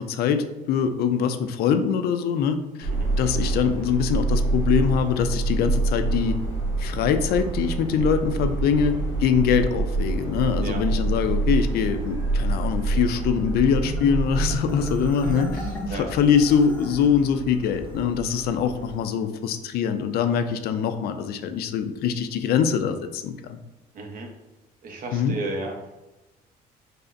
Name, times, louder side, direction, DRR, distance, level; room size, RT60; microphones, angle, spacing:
voice 1, 0.0-2.9 3.2-6.4 6.8-15.6 15.9-23.6 25.1-25.4, left 7 dB, 65° left, 8 dB, 0.4 m, -23 dB
Subway metro underground, 2.8-19.0, right 3 dB, 25° right, 1.0 m, -27 dB
Marimba xylophone, 13.8-17.2, equal, 10° left, 0.6 m, -34 dB
voice 2, 15.2-16.1 23.9-24.3 24.8-25.8, right 2 dB, 55° right, 2 dB, 0.7 m, -34 dB
5.1 x 2.0 x 2.5 m, 1.0 s
cardioid pair, 110°, 17 cm